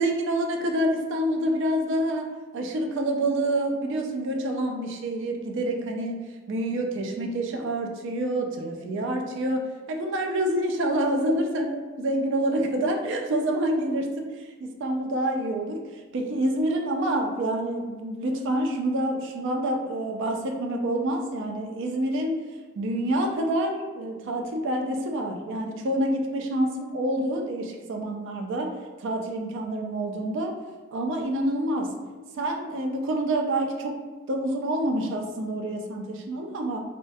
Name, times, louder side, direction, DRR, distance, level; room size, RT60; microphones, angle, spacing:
voice 1, 0.0-22.4 22.8-28.7 29.0-30.6 30.9-32.0 32.3-36.8, right 1 dB, 55° right, 3 dB, 0.3 m, -27 dB
2.3 x 2.1 x 2.5 m, 1.3 s
head